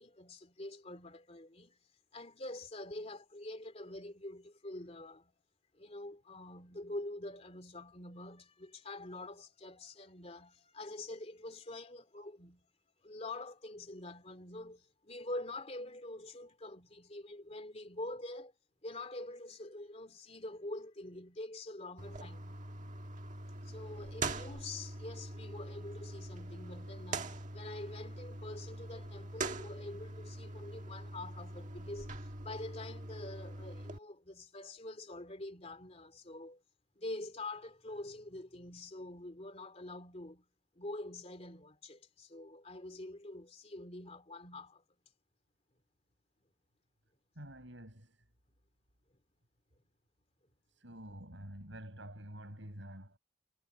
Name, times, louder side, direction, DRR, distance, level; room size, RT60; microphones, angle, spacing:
voice 1, 0.0-1.8 2.1-5.3 5.7-12.7 13.0-18.5 18.8-22.6 23.6-36.6 37.0-40.5 40.7-44.8, left 2 dB, 30° left, 2.9 m, -46 dB
sound 1, 22.0-34.0, right 2 dB, 40° right, 1.7 m, -43 dB
voice 2, 47.4-48.2 50.8-53.2, right 1 dB, 70° right, 7.2 m, -48 dB
head